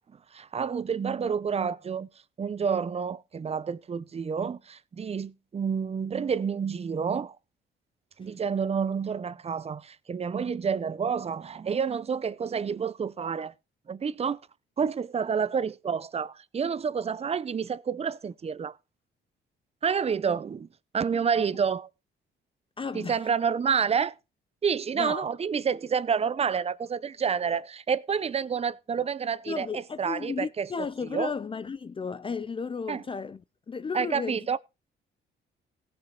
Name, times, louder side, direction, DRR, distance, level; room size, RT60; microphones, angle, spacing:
voice 1, 0.3-2.1 2.4-7.4 8.2-13.5 13.9-14.4 14.8-18.8 19.8-20.7 20.9-21.9 22.9-24.2 24.6-31.3 32.9-33.0 33.9-34.6, right 6 dB, 30° right, 0.7 m, -29 dB
voice 2, 22.8-23.3 24.9-25.3 29.5-33.4 33.7-34.4, left 5 dB, 25° left, 0.5 m, -34 dB
17.0 x 6.1 x 4.4 m
cardioid pair, 90°, 20 cm